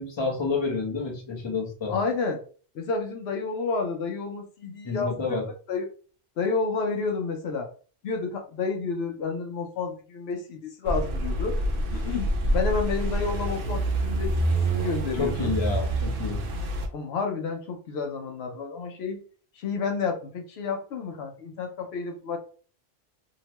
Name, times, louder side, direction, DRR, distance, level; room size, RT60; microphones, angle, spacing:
voice 1, 0.0-2.0 4.8-5.5 15.1-16.4, left 4 dB, 30° left, 0.7 m, -29 dB
voice 2, 1.9-2.4 2.7-5.4 5.7-5.9 6.4-7.7 8.0-11.6 11.9-15.5 16.9-19.2 19.6-22.4, left 4 dB, 75° left, 0.8 m, -30 dB
sound 1, 10.8-16.9, right 1 dB, 65° right, 0.7 m, -27 dB
2.8 x 2.1 x 2.9 m
omnidirectional pair, 1.1 m